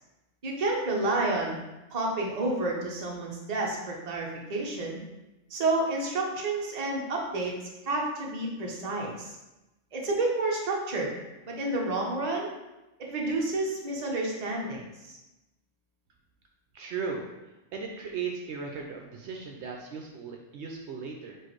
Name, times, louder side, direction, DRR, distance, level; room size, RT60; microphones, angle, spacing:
voice 1, 0.4-1.6 1.9-5.0 5.5-7.5 7.9-9.4 9.9-11.1 11.5-12.5 13.0-15.2, right 2 dB, 40° right, -1 dB, 0.8 m, -30 dB
voice 2, 16.7-17.3 17.7-21.4, right 5 dB, 70° right, 1 dB, 0.8 m, -36 dB
4.5 x 2.5 x 4.5 m, 0.99 s
omnidirectional pair, 1.2 m